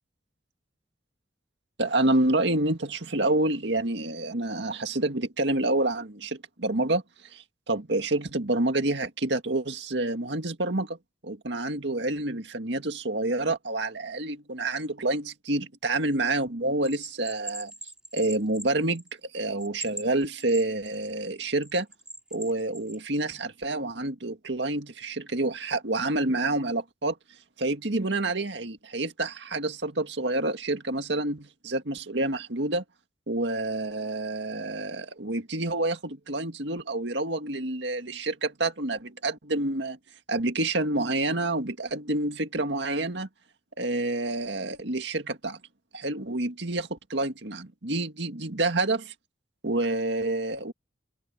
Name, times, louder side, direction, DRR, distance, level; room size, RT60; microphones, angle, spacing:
voice 1, 1.8-7.0 7.3-11.0 11.2-17.7 18.1-19.0 19.3-21.9 22.3-27.2 27.6-32.8 33.3-40.0 40.3-43.3 43.8-45.6 45.9-49.1 49.6-50.7, right 2 dB, 65° right, 2.1 m, -28 dB
Bell, 16.8-19.2 19.6-21.1 21.6-23.0, right 1 dB, 5° right, 5.4 m, -41 dB
open air
head